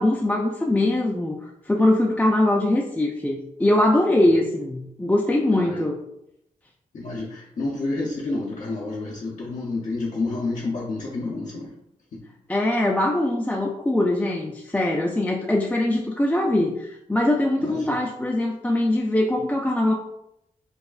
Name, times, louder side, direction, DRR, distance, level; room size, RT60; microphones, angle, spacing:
voice 1, 0.0-6.0 12.5-19.9, left 1 dB, 10° left, 0 dB, 0.3 m, -22 dB
voice 2, 5.5-5.9 6.9-11.8 12.1-12.2 17.6-18.0, left 2 dB, 60° left, -5 dB, 0.6 m, -29 dB
4.7 x 2.3 x 2.4 m, 0.80 s
wide cardioid pair, 100°, 15 cm